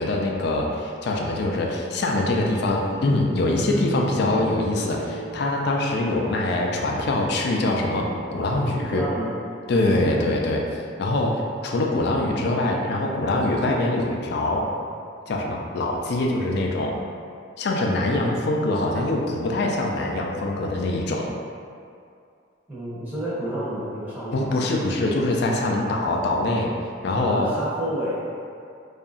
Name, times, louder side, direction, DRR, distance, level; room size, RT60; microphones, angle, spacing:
voice 1, 0.0-9.0 9.7-10.6 11.0-14.7 15.3-16.9 17.6-21.3 24.3-26.7 27.0-27.5, left 2 dB, 60° left, 0 dB, 0.3 m, -24 dB
sound 1, 2.2-7.3, right 1 dB, 45° right, 1.1 m, -33 dB
voice 2, 8.9-9.4 10.0-10.3 22.7-24.6 27.2-28.2, equal, 10° right, -11 dB, 0.7 m, -30 dB
2.8 x 2.4 x 2.4 m, 2.3 s
head